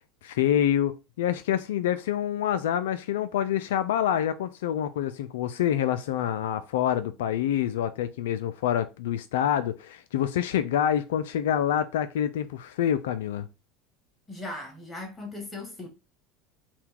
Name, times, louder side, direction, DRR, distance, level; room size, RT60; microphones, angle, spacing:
voice 1, 0.2-13.5, left 10 dB, 80° left, 0.3 m, -27 dB
voice 2, 14.3-15.9, left 2 dB, 15° left, 1.7 m, -38 dB
4.3 x 2.2 x 3.6 m
hypercardioid pair, 85°, 0 cm